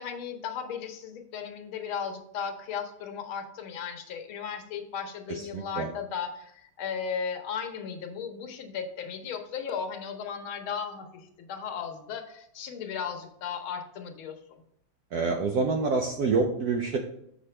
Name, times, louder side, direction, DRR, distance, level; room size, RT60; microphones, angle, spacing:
voice 1, 0.0-14.6, left 6 dB, 80° left, 5 dB, 1.7 m, -36 dB
voice 2, 5.4-5.9 15.1-17.0, right 4 dB, 70° right, 3 dB, 0.9 m, -27 dB
6.7 x 5.5 x 3.2 m, 0.74 s
omnidirectional pair, 2.3 m